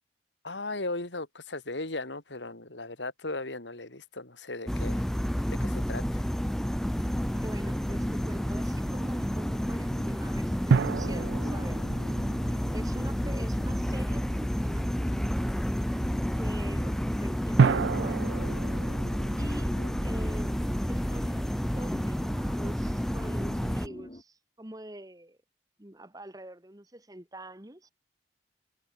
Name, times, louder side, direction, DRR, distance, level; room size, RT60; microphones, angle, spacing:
voice 1, 0.4-5.1 5.6-6.2 19.8-19.9, left 2 dB, 90° left, 3.2 m, -37 dB
sound 1, 4.7-23.9, equal, ahead, 0.3 m, -30 dB
sound 2, 7.0-24.2, left 1 dB, 35° left, 1.2 m, -46 dB
voice 2, 7.3-12.2 12.5-14.9 16.4-18.2 19.4-19.8 20.0-25.4 25.8-27.9, right 1 dB, 20° right, 1.7 m, -45 dB
sound 3, 10.7-13.5 17.6-20.8, right 5 dB, 80° right, 0.4 m, -29 dB
head